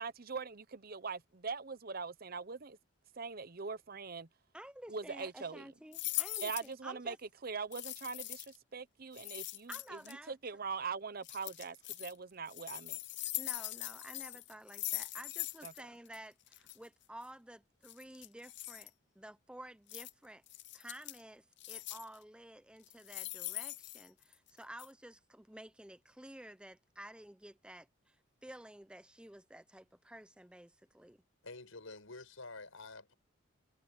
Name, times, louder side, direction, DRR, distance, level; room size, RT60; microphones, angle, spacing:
voice 1, 0.0-2.8 3.2-4.3 4.9-5.7 6.4-7.2 7.4-13.0 15.6-15.7, right 5 dB, 45° right, 0.9 m, -42 dB
voice 2, 4.5-7.2 9.7-10.4 13.4-20.4 20.7-28.2 28.4-31.2, right 1 dB, 5° right, 0.9 m, -52 dB
sound 1, 5.9-6.7 7.7-8.6 9.1-10.1 11.2-12.1 12.5-15.8 16.1-16.2 16.5-16.8 17.8-18.9 19.9-20.1 20.5-21.2 21.6-22.2 22.8-24.5 24.8-24.9, left 17 dB, 60° left, 0.7 m, -41 dB
voice 3, 31.4-33.1, left 3 dB, 90° left, 6.5 m, -49 dB
head